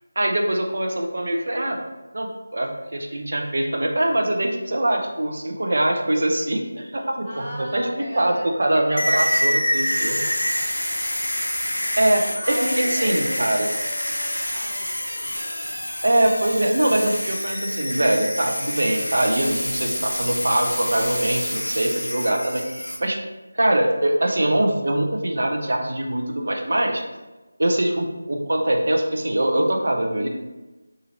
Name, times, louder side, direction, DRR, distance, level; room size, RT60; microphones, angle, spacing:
voice 1, 0.2-1.8 2.1-7.9 8.2-10.2 12.0-13.7 16.0-23.2 23.5-27.0 27.6-30.3, right 1 dB, 60° right, 2 dB, 0.5 m, -23 dB
voice 2, 6.9-9.1 10.1-10.5 11.9-15.1, equal, 20° right, -13 dB, 1.3 m, -37 dB
sound 1, 9.0-23.0, equal, 90° left, 0.4 m, -26 dB
2.8 x 2.4 x 2.9 m, 1.1 s
figure-of-eight pair, 165°, 0 cm